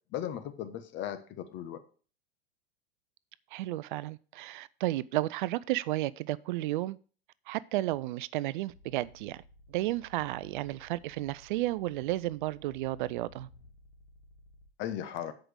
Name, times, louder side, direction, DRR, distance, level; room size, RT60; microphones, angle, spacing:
voice 1, 0.1-1.8 14.8-15.3, left 10 dB, 35° left, 1.2 m, -37 dB
voice 2, 3.5-7.0 7.5-9.4 9.7-13.5, right 16 dB, 50° right, 0.5 m, -32 dB
sound 1, 8.7-14.7, left 2 dB, 70° left, 1.7 m, -56 dB
7.8 x 5.2 x 6.3 m
hypercardioid pair, 95°, 31 cm